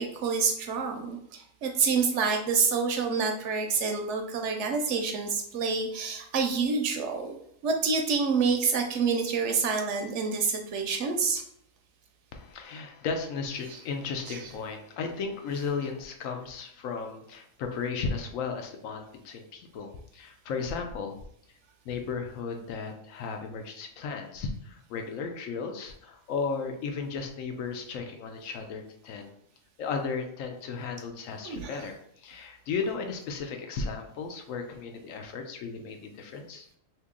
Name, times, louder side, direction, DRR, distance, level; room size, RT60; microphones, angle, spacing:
voice 1, 0.0-7.4 7.6-11.4 14.3-14.4 31.4-31.8, right 5 dB, 70° right, 4 dB, 0.8 m, -27 dB
voice 2, 12.3-21.2 21.8-29.3 29.8-36.7, left 5 dB, 80° left, 4 dB, 1.0 m, -35 dB
2.9 x 2.8 x 3.6 m, 0.69 s
omnidirectional pair, 1.4 m